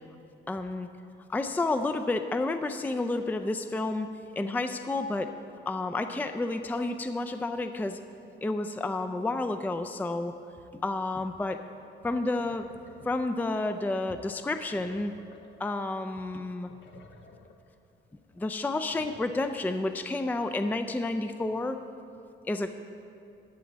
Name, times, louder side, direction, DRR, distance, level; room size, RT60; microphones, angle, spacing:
voice 1, 0.5-0.9 1.3-4.1 4.4-5.3 5.7-8.0 8.4-10.3 10.7-11.6 12.0-12.7 13.0-15.1 15.6-16.7 18.4-21.8 22.5-22.7, left 2 dB, 10° left, 8 dB, 0.4 m, -30 dB
sound 1, 12.1-13.8 14.3-15.8 16.1-16.2 16.4-17.7 18.2-19.8, left 3 dB, 65° left, 0.9 m, -54 dB
14.0 x 8.4 x 4.1 m, 2.5 s
cardioid pair, 90°, 20 cm